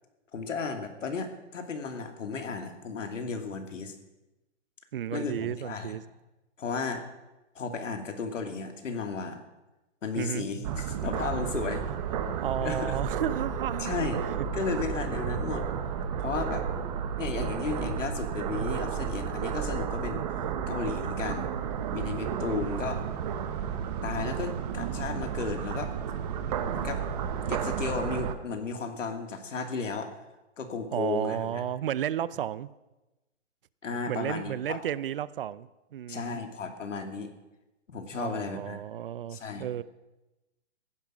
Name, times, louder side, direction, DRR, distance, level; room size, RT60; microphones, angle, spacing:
voice 1, 0.3-3.9 5.1-6.0 6.6-7.1 7.5-9.4 10.0-11.8 12.6-13.1 13.8-14.2 14.5-15.7 16.2-16.7 17.2-20.2 20.7-21.5 21.9-23.0 24.0-25.9 26.7-27.0 27.5-30.2 30.6-31.6 33.8-34.8 36.1-37.3 37.9-38.8 39.3-39.7, left 4 dB, 80° left, 6 dB, 2.6 m, -34 dB
voice 2, 4.9-6.0 10.2-10.5 12.4-14.0 22.5-22.9 30.9-32.7 34.1-36.4 38.1-39.8, right 10 dB, 50° right, 19 dB, 0.6 m, -33 dB
sound 1, 10.6-28.3, right 7 dB, 35° right, 1.1 m, -32 dB
15.5 x 11.0 x 6.1 m, 1.0 s
hypercardioid pair, 155°, 37 cm